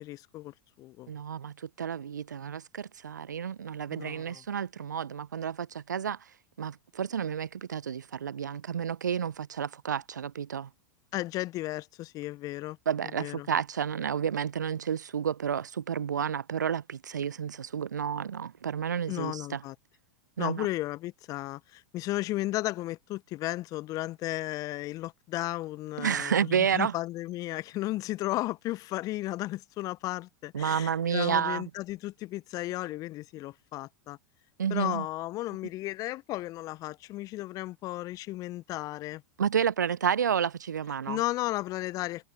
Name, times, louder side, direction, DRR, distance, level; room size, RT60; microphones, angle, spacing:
voice 1, 0.0-1.1 3.9-4.4 11.1-12.8 13.2-13.5 19.1-19.7 20.4-34.2 34.7-39.2 41.1-42.3, left 17 dB, 40° left, 0.7 m, -34 dB
voice 2, 1.1-6.3 6.6-10.7 12.9-19.6 20.4-20.7 26.0-26.9 30.5-31.6 34.6-35.1 39.4-41.2, right 8 dB, 75° right, 0.7 m, -30 dB
figure-of-eight pair, 90°, 10 cm